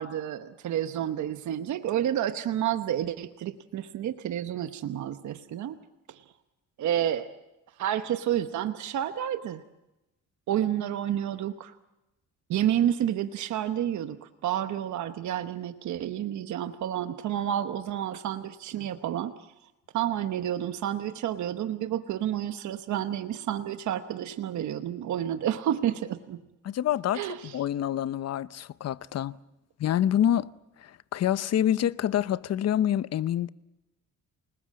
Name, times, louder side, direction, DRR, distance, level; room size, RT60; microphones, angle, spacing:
voice 1, 0.0-5.8 6.1-6.2 6.8-7.3 7.8-9.6 10.5-11.7 12.5-19.3 19.9-26.4 27.1-27.6, right 11 dB, 70° right, 1.1 m, -30 dB
voice 2, 26.6-27.3 27.5-29.3 29.8-30.5 30.8-33.5, left 11 dB, 55° left, 0.8 m, -26 dB
28.5 x 19.5 x 7.6 m
cardioid pair, 90°, 30 cm